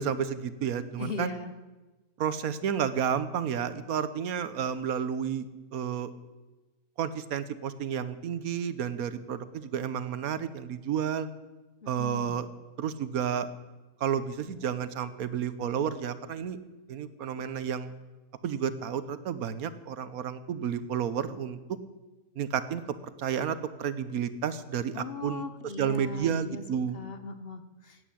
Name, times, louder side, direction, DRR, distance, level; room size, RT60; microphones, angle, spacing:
voice 1, 0.0-1.4 2.2-5.5 5.7-6.1 7.0-11.3 11.9-12.5 12.8-13.5 14.0-16.6 16.9-17.9 18.4-21.6 22.4-22.8 23.2-27.0, right 8 dB, 75° right, 13 dB, 1.3 m, -31 dB
voice 2, 1.0-1.5 11.8-12.4 24.9-26.6 26.9-28.0, left 3 dB, 45° left, 9 dB, 1.1 m, -39 dB
16.0 x 9.5 x 8.5 m, 1.2 s
omnidirectional pair, 1.5 m